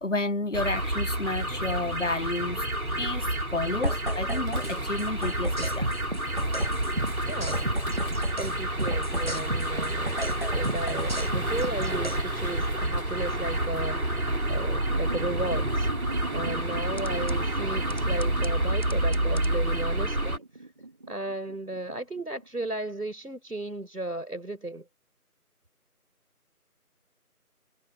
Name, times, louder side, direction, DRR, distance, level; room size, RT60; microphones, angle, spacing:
voice 1, 0.0-2.7 3.0-6.1, left 2 dB, 55° left, 0.7 m, -31 dB
sound 1, 0.5-20.4, right 1 dB, 65° right, 3.0 m, -29 dB
sound 2, 3.8-4.7 5.0-8.5 8.8-12.2 17.0-17.3 17.9-18.5 18.8-19.5, right 1 dB, 40° right, 1.4 m, -32 dB
voice 2, 7.3-7.8 8.3-15.9 16.3-20.4 21.1-24.9, right 2 dB, 85° right, 4.4 m, -35 dB
sound 3, 14.9-22.7, right 2 dB, 20° right, 5.2 m, -42 dB
figure-of-eight pair, 170°, 45 cm